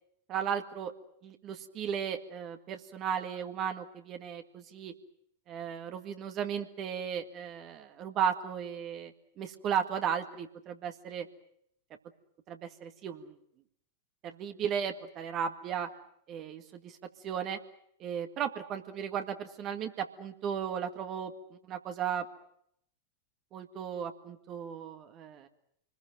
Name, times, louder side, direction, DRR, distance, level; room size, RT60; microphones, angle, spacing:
voice 1, 0.3-0.9 1.2-4.9 5.5-11.3 12.5-13.4 14.2-15.9 16.3-17.0 17.2-17.6 18.0-22.3 23.5-25.5, right 8 dB, 35° right, 7 dB, 1.9 m, -35 dB
27.0 x 20.5 x 7.7 m, 0.72 s
figure-of-eight pair, 90°, 0 cm